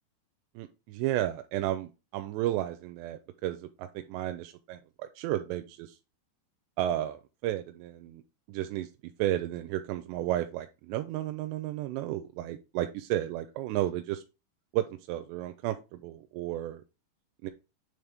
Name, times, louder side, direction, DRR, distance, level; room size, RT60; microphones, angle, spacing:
voice 1, 0.6-6.0 6.8-8.2 8.5-8.9 9.2-14.2 14.7-16.8 17.4-17.5, right 13 dB, 85° right, 8 dB, 2.7 m, -33 dB
9.4 x 3.4 x 3.5 m, 0.29 s
omnidirectional pair, 4.9 m